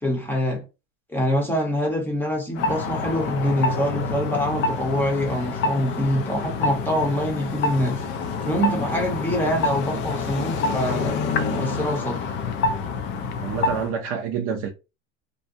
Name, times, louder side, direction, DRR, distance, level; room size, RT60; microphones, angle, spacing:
voice 1, 0.0-0.6 1.1-8.0 8.4-11.2 11.5-12.2, equal, 5° left, 0.7 m, -25 dB
sound 1, 2.6-13.9, left 4 dB, 35° left, 0.4 m, -27 dB
voice 2, 13.4-14.7, right 7 dB, 40° right, 0.5 m, -27 dB
2.6 x 2.1 x 2.6 m
supercardioid pair, 130°, 36 cm